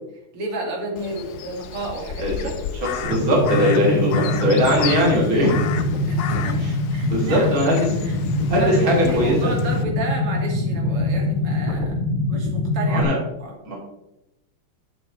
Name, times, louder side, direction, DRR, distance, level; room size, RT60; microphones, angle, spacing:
voice 1, 0.3-2.5 6.1-6.6 6.9-7.6 8.0-8.2 8.5-11.9 12.3-13.1 13.4-13.5, right 2 dB, 85° right, 0 dB, 3.0 m, -31 dB
Crow, 1.0-9.8, left 9 dB, 80° left, 0.8 m, -33 dB
voice 2, 2.8-5.6 6.6-6.7 7.1-7.9 8.5-9.5 12.8-13.2 13.6-13.7, equal, 40° right, -4 dB, 3.1 m, -20 dB
sound 1, 3.0-13.0, left 2 dB, 25° right, 1.3 m, -23 dB
11.0 x 7.3 x 3.1 m, 0.92 s
omnidirectional pair, 2.4 m